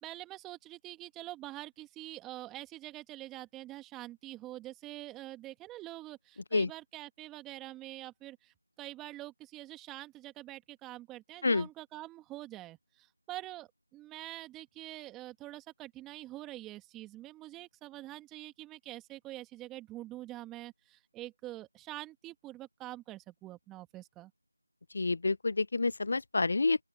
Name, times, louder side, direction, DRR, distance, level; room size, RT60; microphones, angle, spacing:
voice 1, 0.0-24.3, right 16 dB, 5° right, 1.9 m, -45 dB
voice 2, 24.9-26.8, left 3 dB, 35° left, 0.8 m, -28 dB
open air
figure-of-eight pair, 170°, 0 cm